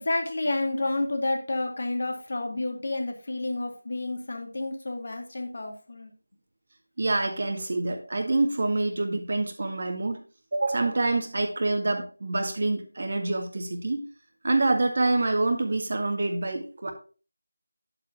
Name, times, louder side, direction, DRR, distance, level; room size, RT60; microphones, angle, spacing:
voice 1, 0.0-6.1, left 2 dB, 45° left, 4 dB, 2.2 m, -30 dB
voice 2, 7.0-10.2 10.5-14.1 14.4-16.9, right 2 dB, 40° right, 5 dB, 1.8 m, -26 dB
10.5 x 7.8 x 2.8 m, 0.35 s
figure-of-eight pair, 165°, 0 cm